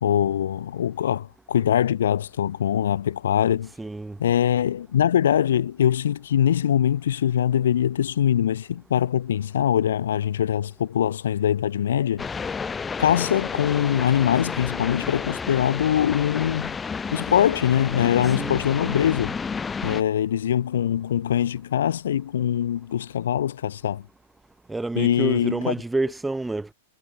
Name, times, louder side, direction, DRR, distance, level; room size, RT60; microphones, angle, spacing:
voice 1, 0.0-3.7 4.2-12.3 13.0-16.8 17.1-19.4 19.8-24.1 24.9-25.7, left 10 dB, 70° left, 0.9 m, -23 dB
voice 2, 3.8-4.2 18.4-18.6 24.7-26.7, right 2 dB, 5° right, 1.3 m, -28 dB
sound 1, 12.2-20.0, left 5 dB, 15° left, 0.4 m, -31 dB
hypercardioid pair, 105°, 0 cm